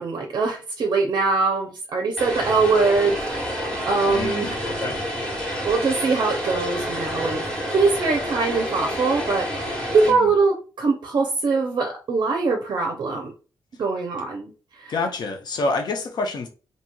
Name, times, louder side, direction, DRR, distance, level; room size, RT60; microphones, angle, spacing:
voice 1, 0.0-3.5 3.8-4.6 5.6-9.5 9.9-13.3 13.8-14.5 14.8-14.9, right 4 dB, 55° right, 0.5 m, -22 dB
Vehicle, 2.2-10.1, equal, 10° left, 1.1 m, -29 dB
voice 2, 4.1-5.0 10.1-10.3 14.9-16.5, left 3 dB, 55° left, 0.7 m, -27 dB
2.9 x 2.7 x 2.2 m
wide cardioid pair, 135°, 8 cm